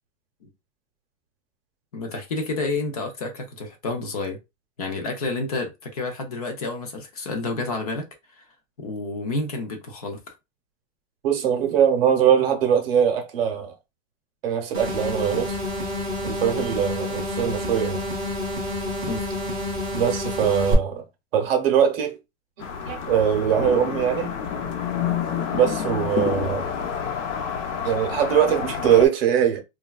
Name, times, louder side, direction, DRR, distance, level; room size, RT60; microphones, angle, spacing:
voice 1, 1.9-4.4 4.8-8.1 8.8-10.2 19.0-19.2, left 3 dB, 30° left, 0.4 m, -29 dB
voice 2, 11.2-13.7 14.4-15.6 16.2-18.0 19.9-21.0 21.3-22.2 22.6-24.3 25.5-26.7 27.8-29.6, right 9 dB, 50° right, 0.8 m, -22 dB
sound 1, 14.7-20.7, left 1 dB, 10° right, 0.7 m, -29 dB
sound 2, 22.6-29.1, left 7 dB, 75° left, 0.9 m, -28 dB
3.1 x 2.3 x 2.2 m
supercardioid pair, 180°, 37 cm